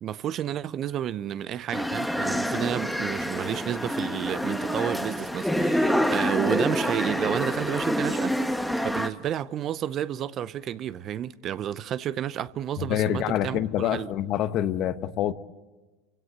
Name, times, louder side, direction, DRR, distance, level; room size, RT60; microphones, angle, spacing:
voice 1, 0.0-8.5 8.8-14.1, right 10 dB, 40° right, 0.7 m, -31 dB
sound 1, 1.7-9.1, equal, ahead, 1.2 m, -27 dB
voice 2, 12.8-15.3, left 11 dB, 50° left, 1.0 m, -26 dB
29.5 x 16.5 x 8.1 m
supercardioid pair, 105°, 0 cm